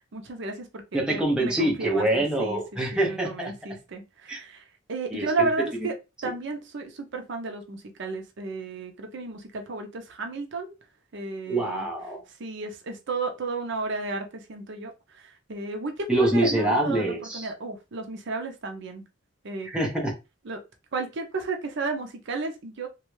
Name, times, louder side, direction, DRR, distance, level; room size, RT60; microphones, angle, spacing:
voice 1, 0.0-2.6 2.9-5.9 6.2-10.8 11.1-11.9 12.3-19.0 19.4-19.7 20.4-20.6 20.9-22.9, right 3 dB, 60° right, 0.6 m, -33 dB
voice 2, 0.9-3.5 4.3-4.4 5.1-5.5 11.5-12.2 16.1-17.5 19.7-20.1, right 1 dB, 5° right, 0.7 m, -25 dB
3.0 x 2.3 x 3.1 m
head